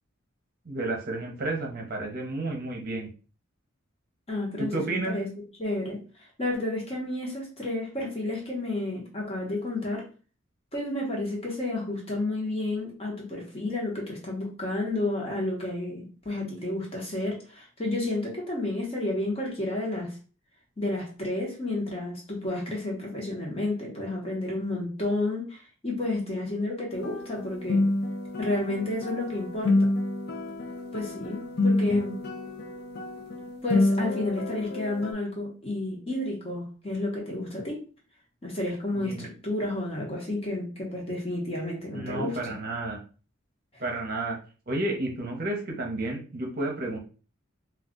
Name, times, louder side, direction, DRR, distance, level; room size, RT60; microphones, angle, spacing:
voice 1, 0.7-3.1 4.6-5.2 31.9-32.0 38.9-39.3 41.9-43.0 43.8-44.4 44.7-47.0, right 2 dB, 45° right, 0 dB, 0.7 m, -31 dB
voice 2, 4.3-5.3 5.6-10.1 10.7-20.2 20.8-27.8 28.4-29.9 30.9-32.2 33.6-37.9 38.4-42.5, left 2 dB, 30° left, -2 dB, 0.9 m, -31 dB
sound 1, 26.9-35.1, left 2 dB, 50° left, 0.5 m, -28 dB
2.3 x 2.3 x 3.6 m, 0.37 s
head